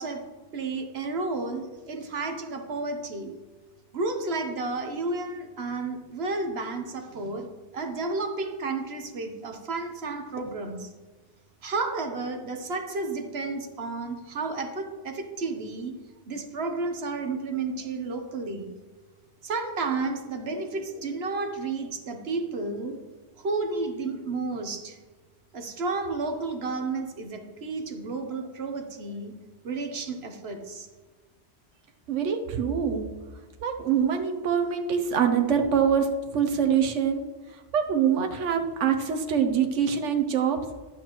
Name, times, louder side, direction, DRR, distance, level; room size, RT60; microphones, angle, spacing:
voice 1, 0.0-3.4 3.9-10.9 11.6-16.0 16.3-18.7 19.4-23.0 23.4-25.0 25.5-29.4 29.6-30.9, right 3 dB, 60° right, 6 dB, 1.2 m, -32 dB
voice 2, 32.1-33.1 33.6-40.6, right 7 dB, 80° right, 5 dB, 1.2 m, -25 dB
12.0 x 8.3 x 3.0 m, 1.3 s
omnidirectional pair, 1.2 m